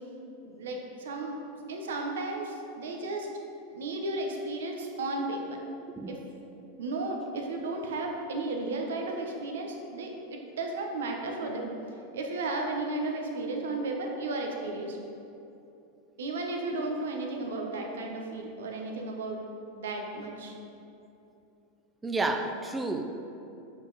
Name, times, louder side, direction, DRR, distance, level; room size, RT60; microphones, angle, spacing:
voice 1, 0.4-1.4 1.7-3.3 3.7-5.4 6.1-6.2 6.8-11.7 12.1-15.0 16.2-19.4 19.8-20.5, right 2 dB, 85° right, 2 dB, 0.9 m, -34 dB
voice 2, 22.0-23.0, right 2 dB, 15° right, 5 dB, 0.6 m, -30 dB
7.1 x 5.3 x 4.1 m, 2.8 s
hypercardioid pair, 115°, 0 cm